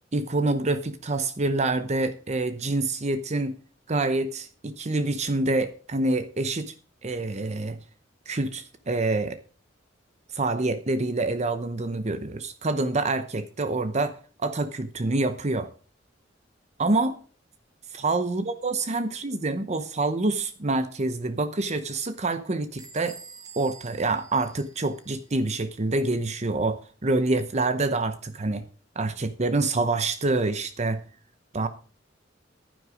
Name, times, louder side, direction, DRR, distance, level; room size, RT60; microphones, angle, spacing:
voice 1, 0.1-3.6 3.9-6.7 7.0-7.8 8.3-9.4 10.3-15.7 16.8-17.2 17.9-23.2 23.6-28.7 29.0-31.0 31.5-31.7, right 2 dB, 35° right, 11 dB, 0.8 m, -26 dB
Bell / Squeak, 22.8-25.3, right 5 dB, 20° right, 1.7 m, -47 dB
11.0 x 10.0 x 4.9 m, 0.38 s
head